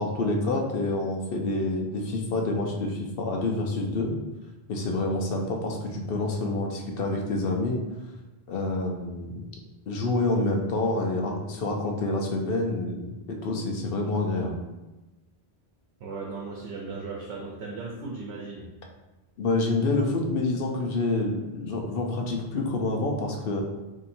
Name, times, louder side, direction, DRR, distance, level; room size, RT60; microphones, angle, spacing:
voice 1, 0.0-4.1 4.7-7.8 8.5-9.3 9.9-13.0 13.3-14.6 19.4-23.6, left 2 dB, 65° left, 1 dB, 0.8 m, -27 dB
voice 2, 16.0-18.7, right 3 dB, 80° right, -2 dB, 0.9 m, -36 dB
4.1 x 2.8 x 2.6 m, 1.1 s
omnidirectional pair, 1.1 m